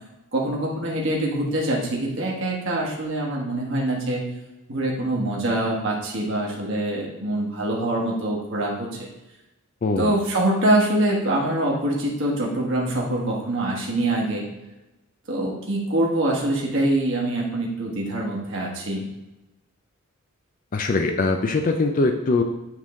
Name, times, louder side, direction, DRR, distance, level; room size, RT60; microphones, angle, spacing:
voice 1, 0.3-4.2 4.7-9.1 10.0-14.4 15.3-19.0, right 1 dB, 55° right, -3 dB, 1.3 m, -24 dB
voice 2, 9.8-10.1 20.7-22.4, left 3 dB, 40° left, 5 dB, 0.4 m, -22 dB
7.5 x 3.6 x 3.7 m, 0.98 s
head